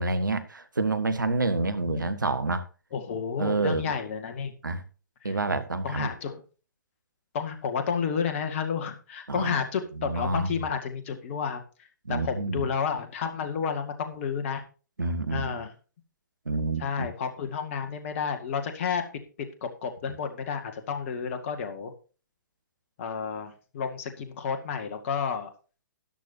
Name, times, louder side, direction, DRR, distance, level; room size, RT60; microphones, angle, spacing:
voice 1, 0.0-2.6 3.4-3.9 4.6-4.8 5.2-6.1 9.3-9.6 10.0-10.6 12.1-12.7 15.0-15.5 16.4-17.1, right 3 dB, 75° right, 1.5 m, -28 dB
voice 2, 2.9-4.5 5.2-5.4 5.8-6.4 7.3-11.6 12.1-14.6 15.3-15.7 16.8-19.0 19.6-21.9 23.0-25.5, left 6 dB, 40° left, 2.0 m, -31 dB
13.0 x 11.0 x 2.8 m
figure-of-eight pair, 120°, 10 cm